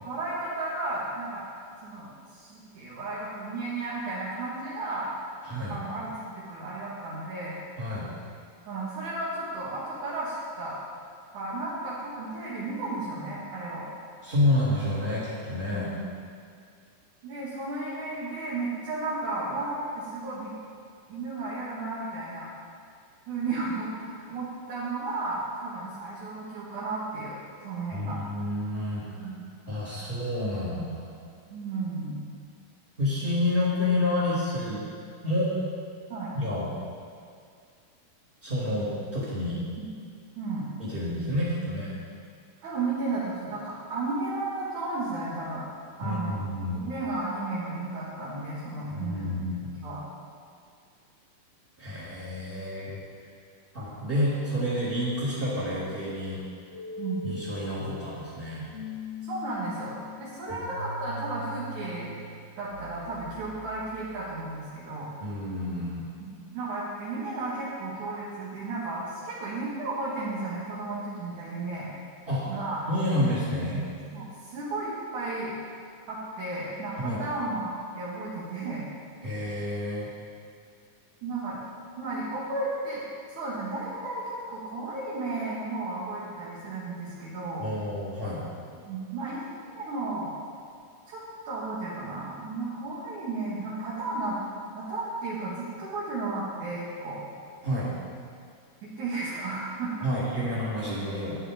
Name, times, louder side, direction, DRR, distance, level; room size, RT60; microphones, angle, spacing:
voice 1, 0.0-1.4 1.8-5.1 5.7-7.6 8.7-10.8 11.3-13.9 15.9-16.0 17.2-20.5 21.1-22.5 23.3-27.4 27.6-28.4 29.2-29.4 31.5-32.2 36.1-36.3 39.8-39.9 40.4-40.7 42.6-45.6 46.0-46.4 46.7-49.4 49.8-50.0 57.0-57.4 59.3-62.2 62.6-65.1 66.2-71.9 72.5-72.9 74.1-75.5 76.1-78.8 81.2-81.6 82.0-83.0 83.3-87.7 88.8-89.4 89.8-90.3 91.1-94.4 94.7-97.2 98.8-100.1, right 2 dB, 60° right, -8 dB, 3.2 m, -33 dB
voice 2, 5.4-5.8 7.8-8.1 14.2-15.9 27.9-29.3 29.7-31.1 33.0-34.8 35.2-35.6 36.3-36.7 38.4-39.6 40.8-41.9 46.0-46.8 48.9-49.7 51.8-53.0 53.7-56.4 57.2-58.6 65.2-66.0 72.3-72.5 72.9-73.9 77.0-77.2 79.2-80.1 87.6-88.4 97.6-97.9 100.0-101.4, left 1 dB, 15° right, -9 dB, 2.4 m, -29 dB
sound 1, 56.7-64.6, left 3 dB, 80° left, 3.6 m, -42 dB
13.0 x 9.9 x 5.1 m, 2.3 s
omnidirectional pair, 4.2 m